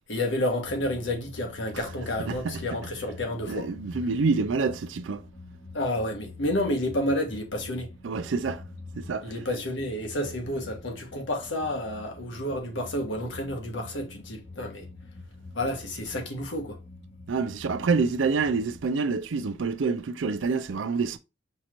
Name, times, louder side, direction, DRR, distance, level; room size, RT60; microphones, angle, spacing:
voice 1, 0.1-3.7 5.7-7.9 9.2-14.9 15.5-16.8, left 1 dB, 75° left, 1.3 m, -30 dB
sound 1, 0.7-18.8, left 2 dB, 35° left, 0.7 m, -45 dB
voice 2, 2.3-2.6 3.5-5.2 8.0-8.6 9.0-9.3 17.3-21.2, right 4 dB, 85° right, 0.5 m, -27 dB
5.5 x 3.0 x 2.5 m
head